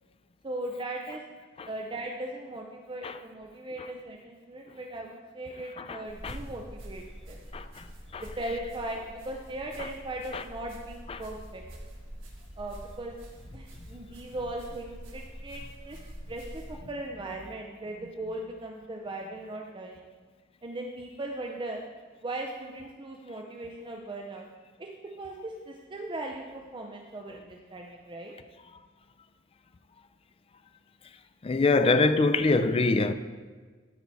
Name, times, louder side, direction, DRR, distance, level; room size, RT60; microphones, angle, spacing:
voice 1, 0.4-1.2 1.7-7.4 8.2-11.6 12.6-13.1 13.5-16.0 16.3-20.1 20.6-21.8 22.2-24.5 24.8-24.9 25.2-28.3, right 1 dB, 25° right, 0.5 m, -38 dB
voice 2, 5.8-6.4 7.5-7.9 8.1-8.2 9.8-9.9 10.3-10.4 11.1-11.2 31.4-33.1, left 3 dB, 30° left, 0.4 m, -25 dB
sound 1, 6.1-16.8, equal, 85° right, 1.6 m, -45 dB
12.5 x 4.6 x 4.0 m
head